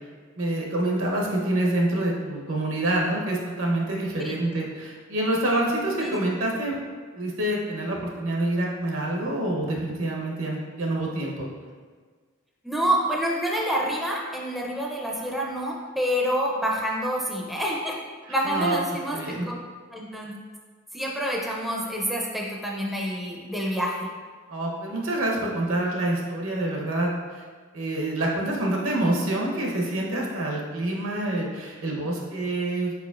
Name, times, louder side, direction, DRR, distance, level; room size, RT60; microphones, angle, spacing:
voice 1, 0.4-6.8 7.2-11.5 18.4-18.8 19.1-19.5 24.5-27.4 27.7-32.9, right 1 dB, 75° right, -2 dB, 0.9 m, -27 dB
voice 2, 12.6-18.0 18.3-19.6 19.9-20.3 20.9-24.1, equal, ahead, -3 dB, 0.4 m, -27 dB
4.7 x 4.4 x 2.4 m, 1.5 s
head